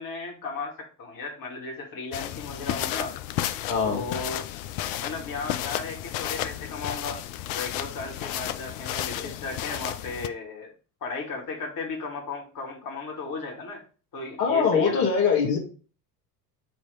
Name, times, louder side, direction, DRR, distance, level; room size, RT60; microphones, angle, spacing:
voice 1, 0.0-3.2 3.8-4.5 5.0-7.2 7.5-10.7 11.0-13.8 14.1-15.0, left 3 dB, 45° left, 0 dB, 2.1 m, -35 dB
sound 1, 2.1-10.3, left 12 dB, 60° left, 0.7 m, -32 dB
voice 2, 3.7-4.0 14.4-15.6, left 6 dB, 80° left, -4 dB, 2.1 m, -22 dB
7.6 x 3.0 x 4.7 m, 0.37 s
hypercardioid pair, 65°, 49 cm